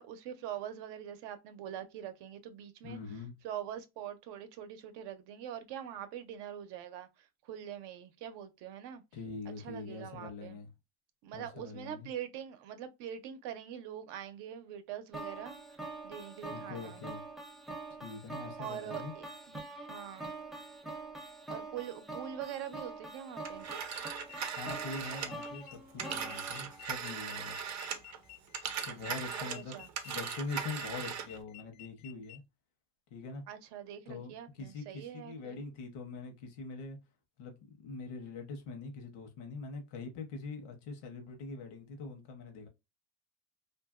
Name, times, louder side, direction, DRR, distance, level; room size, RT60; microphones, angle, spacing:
voice 1, 0.0-3.0 3.4-9.0 9.6-10.6 11.2-15.6 16.0-17.0 18.6-20.3 21.5-23.7 29.4-29.9 33.5-35.6, right 10 dB, 80° right, 0.6 m, -43 dB
voice 2, 2.8-3.3 9.1-10.7 11.3-12.1 16.5-17.2 18.0-19.1 24.5-27.6 28.8-32.4 33.1-33.4 34.1-37.0 37.4-42.7, left 4 dB, 80° left, 0.9 m, -43 dB
sound 1, 15.1-27.3, right 2 dB, ahead, 0.3 m, -45 dB
Telephone, 23.4-28.2 28.5-31.4, right 7 dB, 45° right, 0.6 m, -39 dB
sound 2, 23.9-32.4, left 19 dB, 65° left, 0.5 m, -53 dB
2.7 x 2.5 x 2.4 m
cardioid pair, 135°, 40 cm